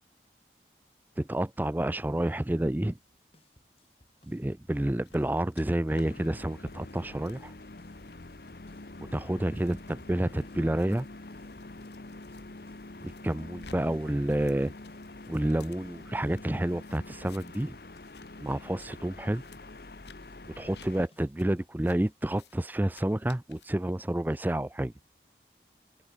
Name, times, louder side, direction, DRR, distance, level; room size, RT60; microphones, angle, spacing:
voice 1, 1.2-3.0 4.2-7.5 9.1-11.1 13.0-14.7 15.3-17.8 18.4-19.4 20.6-24.9, right 1 dB, 10° right, 0.4 m, -29 dB
sound 1, 2.9-22.1, left 1 dB, 35° left, 6.7 m, -65 dB
sound 2, 5.0-5.6 5.9-6.1 6.4-6.7 7.2-7.4 8.0-8.2 8.8-12.4 12.8-13.8 14.1-16.4 16.8-17.7 17.9-18.3 18.6-18.9 19.4-19.6 20.0-20.2 20.7-20.9 21.4-21.5 21.8-22.0 22.3-22.6 22.9-23.7, left 5 dB, 75° left, 3.2 m, -56 dB
sound 3, 5.9-21.1, left 2 dB, 60° left, 1.1 m, -46 dB
open air
head